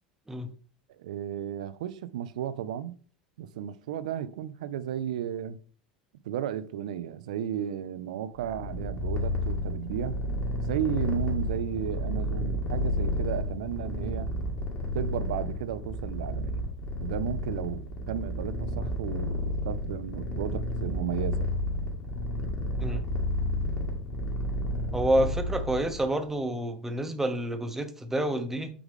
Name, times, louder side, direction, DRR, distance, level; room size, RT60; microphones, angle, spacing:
voice 1, 1.0-3.0 3.4-5.6 6.2-10.2 10.6-14.3 14.9-16.6 17.0-21.5, right 10 dB, 60° right, 0.5 m, -34 dB
Purr, 8.4-26.1, left 1 dB, 40° left, 2.0 m, -31 dB
voice 2, 24.9-28.7, right 1 dB, 10° right, 0.9 m, -28 dB
8.4 x 3.5 x 3.5 m
figure-of-eight pair, 80°, 4 cm